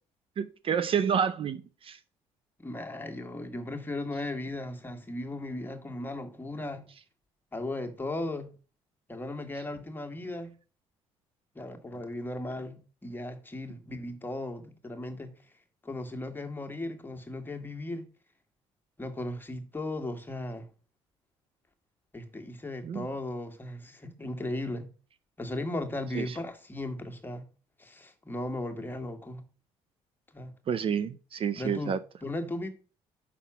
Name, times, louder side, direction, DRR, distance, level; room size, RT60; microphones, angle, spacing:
voice 1, 0.4-2.0 22.8-23.1 26.2-26.4 30.7-32.0, right 7 dB, 45° right, 0.5 m, -29 dB
voice 2, 2.6-6.9 7.5-8.5 9.1-10.5 11.5-15.3 15.8-18.1 19.0-20.7 22.1-24.9 25.4-27.5 27.8-29.4 30.3-30.5 31.6-31.9 32.2-32.7, left 1 dB, 15° left, 1.4 m, -36 dB
5.8 x 4.0 x 6.0 m
supercardioid pair, 70°, 13 cm